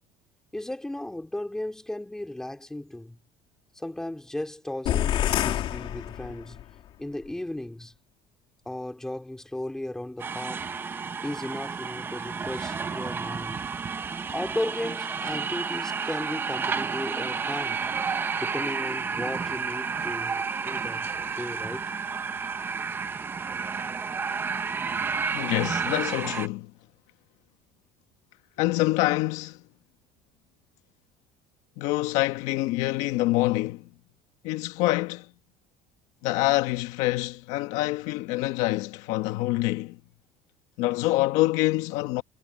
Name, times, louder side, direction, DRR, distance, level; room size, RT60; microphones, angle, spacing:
voice 1, 0.5-3.2 3.7-6.6 7.0-7.9 8.6-10.7 11.2-13.6 14.3-17.8 18.3-21.1 21.3-21.9, left 1 dB, 5° left, 3.1 m, -35 dB
sound 1, 4.9-6.7, left 11 dB, 45° left, 2.4 m, -27 dB
sound 2, 10.2-26.5, right 5 dB, 15° right, 0.8 m, -31 dB
voice 2, 25.3-26.7 28.6-29.6 31.8-33.9 34.4-35.3 36.2-40.0 40.8-42.2, left 18 dB, 70° left, 1.5 m, -26 dB
cardioid pair, 165°, 12 cm